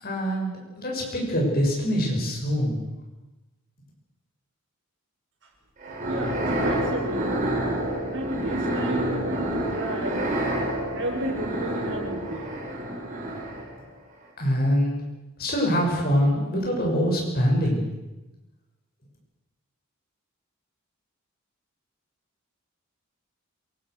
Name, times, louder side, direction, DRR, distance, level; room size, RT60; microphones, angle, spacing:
voice 1, 0.0-2.8 14.4-15.0 15.4-17.8, equal, 45° left, -1 dB, 7.3 m, -24 dB
sound 1, 5.8-13.8, right 1 dB, 35° right, 4.8 m, -28 dB
voice 2, 6.1-7.4 8.1-10.2 10.9-12.5, right 1 dB, 60° right, 0 dB, 6.9 m, -32 dB
26.5 x 18.5 x 6.5 m, 1.0 s
head